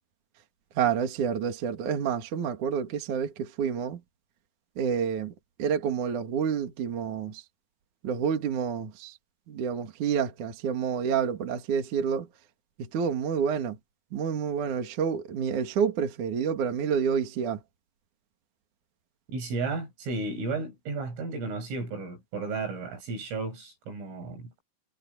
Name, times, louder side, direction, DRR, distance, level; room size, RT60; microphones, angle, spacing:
voice 1, 0.8-4.0 4.8-5.3 5.6-7.4 8.0-9.2 9.5-12.3 12.8-13.8 14.1-17.6, right 7 dB, 45° right, 2.9 m, -28 dB
voice 2, 19.3-24.5, right 3 dB, 70° right, 9.8 m, -33 dB
omnidirectional pair, 6.0 m